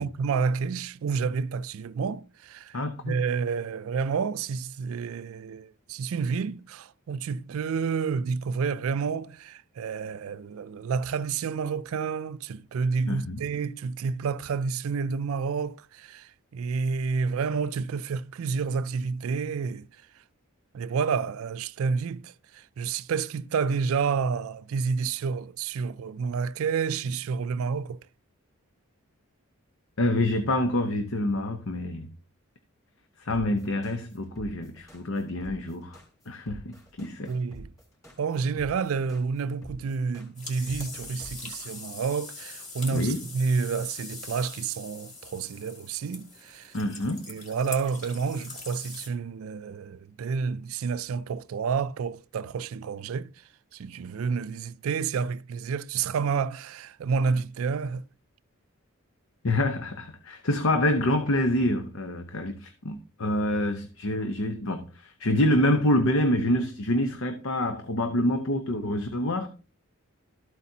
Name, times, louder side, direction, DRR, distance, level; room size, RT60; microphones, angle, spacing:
voice 1, 0.0-19.9 20.7-28.0 37.3-37.7 38.2-46.7 47.3-53.3 53.7-58.0, right 5 dB, 75° right, 0.4 m, -29 dB
voice 2, 2.7-3.2 13.1-13.4 30.0-32.1 33.2-36.0 36.3-37.3 42.9-43.2 46.7-47.3 59.4-69.5, left 1 dB, 70° left, 0.9 m, -27 dB
sound 1, 33.3-41.7, equal, 15° left, 3.2 m, -46 dB
sound 2, 40.3-49.1, left 3 dB, 35° left, 2.3 m, -42 dB
13.0 x 8.1 x 2.8 m
head